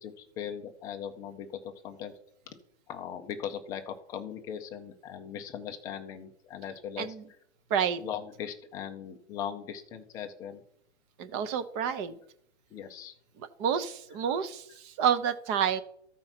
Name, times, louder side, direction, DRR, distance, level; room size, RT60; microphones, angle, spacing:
voice 1, 0.0-2.1 2.5-2.6 2.9-7.1 7.7-10.6 12.7-13.1 14.3-14.4, left 8 dB, 10° left, 5 dB, 0.4 m, -39 dB
voice 2, 7.7-8.0 11.2-12.1 13.6-15.8, right 8 dB, 25° right, 12 dB, 0.7 m, -29 dB
13.5 x 4.5 x 5.7 m, 0.72 s
hypercardioid pair, 150°, 34 cm